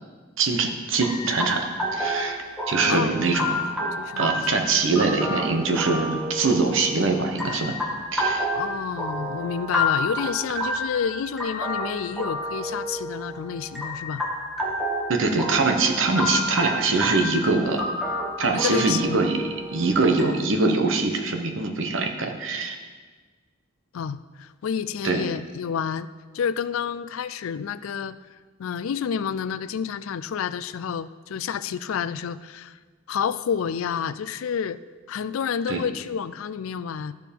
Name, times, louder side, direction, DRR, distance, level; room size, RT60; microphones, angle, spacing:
voice 1, 0.4-3.6 4.2-7.7 8.1-8.5 15.1-17.8 18.4-19.4 19.7-22.8 25.0-25.3 35.7-35.8, right 3 dB, 70° right, 4 dB, 1.0 m, -23 dB
sound 1, 1.0-20.2, left 1 dB, ahead, 1.3 m, -30 dB
voice 2, 4.0-4.4 8.5-14.2 18.5-19.2 23.9-26.1 26.3-28.2 28.6-32.8 33.1-34.8 35.1-37.1, left 7 dB, 85° left, 15 dB, 0.4 m, -29 dB
13.0 x 4.7 x 5.2 m, 1.4 s
head